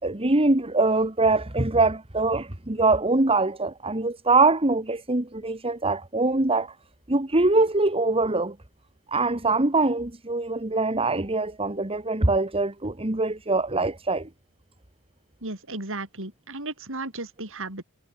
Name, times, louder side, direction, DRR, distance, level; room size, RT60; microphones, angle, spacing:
voice 1, 0.0-6.7 7.1-8.6 9.1-14.3, right 3 dB, 25° right, 1.8 m, -23 dB
voice 2, 15.4-17.8, right 2 dB, 60° right, 7.6 m, -35 dB
head